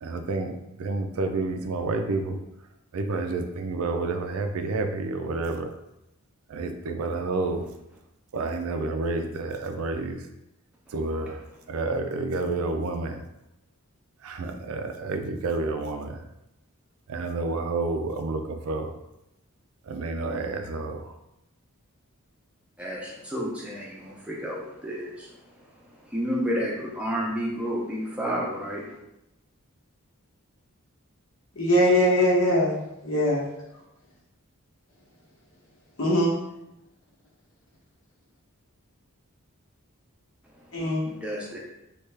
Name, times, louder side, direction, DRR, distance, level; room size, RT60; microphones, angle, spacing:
voice 1, 0.0-2.4 2.9-5.7 6.5-7.6 8.3-10.2 10.9-11.4 11.7-13.2 14.2-16.2 17.1-18.9 19.9-21.0, right 3 dB, 75° right, 6 dB, 0.4 m, -29 dB
voice 2, 10.9-11.6 22.8-29.0 40.4-40.7 41.0-41.6, equal, 5° right, -4 dB, 0.6 m, -32 dB
voice 3, 31.6-32.7 33.0-33.4 36.0-36.4 40.7-41.0, equal, 70° left, -5 dB, 1.0 m, -21 dB
3.2 x 2.3 x 3.3 m, 0.87 s
head